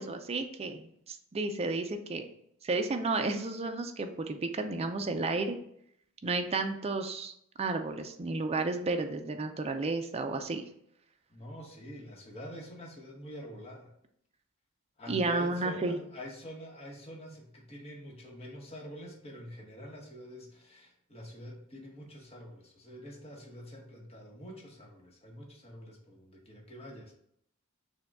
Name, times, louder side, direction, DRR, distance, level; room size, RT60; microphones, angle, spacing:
voice 1, 0.0-2.3 2.6-5.6 6.2-7.3 7.6-10.6 15.1-15.9, right 3 dB, 30° right, 6 dB, 0.4 m, -32 dB
voice 2, 11.3-13.9 15.0-27.1, equal, 30° left, -1 dB, 1.0 m, -46 dB
6.2 x 2.3 x 3.5 m, 0.71 s
head